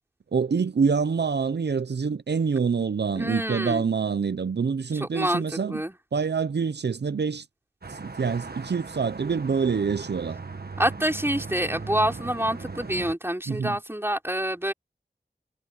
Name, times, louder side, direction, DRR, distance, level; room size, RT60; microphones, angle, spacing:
voice 1, 0.3-5.8 6.1-7.5 7.9-10.4 13.5-13.8, right 5 dB, 80° right, 0.5 m, -26 dB
voice 2, 3.2-3.8 4.9-5.9 10.8-14.7, right 1 dB, 15° right, 4.0 m, -27 dB
sound 1, 7.8-13.2, right 4 dB, 65° right, 1.5 m, -38 dB
wide cardioid pair, 50°, 17 cm